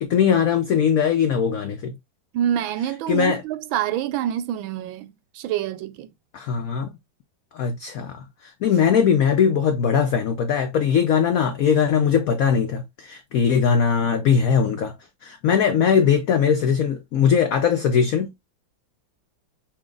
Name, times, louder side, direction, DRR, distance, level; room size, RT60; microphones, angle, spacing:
voice 1, 0.0-1.9 3.1-3.4 6.3-6.9 7.5-14.9 15.2-18.3, left 7 dB, 90° left, 0.7 m, -20 dB
voice 2, 2.3-6.1, right 11 dB, 80° right, 1.3 m, -26 dB
5.9 x 2.3 x 3.7 m
omnidirectional pair, 2.2 m